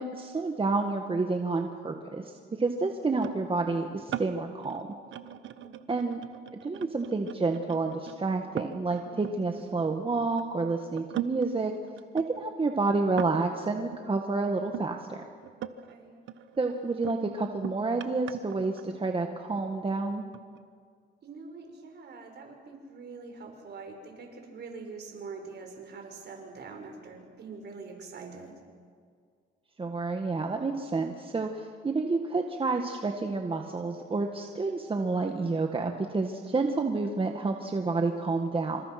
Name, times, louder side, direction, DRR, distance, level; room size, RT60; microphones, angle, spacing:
voice 1, 0.0-4.9 5.9-6.2 6.5-11.7 12.1-15.2 16.6-20.2 29.8-38.8, right 3 dB, 25° right, 4 dB, 1.8 m, -29 dB
sound 1, 3.2-10.4 11.0-14.9 15.4-16.0 16.3-19.4 20.1-20.6, right 10 dB, 75° right, 1.2 m, -41 dB
voice 2, 15.8-16.2 21.2-28.6, right 4 dB, 55° right, 4 dB, 5.3 m, -44 dB
27.0 x 27.0 x 6.0 m, 2.1 s
cardioid pair, 90°, 20 cm